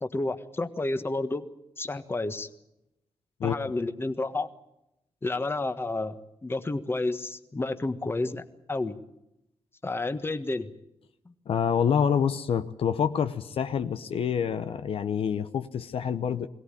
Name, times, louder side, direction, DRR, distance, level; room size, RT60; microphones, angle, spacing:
voice 1, 0.0-1.4 1.8-2.5 3.4-4.5 5.2-6.1 6.4-8.4 8.7-9.0 9.8-10.7 11.2-11.3, left 2 dB, 25° left, 10 dB, 1.4 m, -30 dB
voice 2, 11.5-16.5, left 7 dB, 75° left, 10 dB, 0.9 m, -27 dB
21.5 x 17.5 x 10.0 m, 0.85 s
cardioid pair, 100°, 10 cm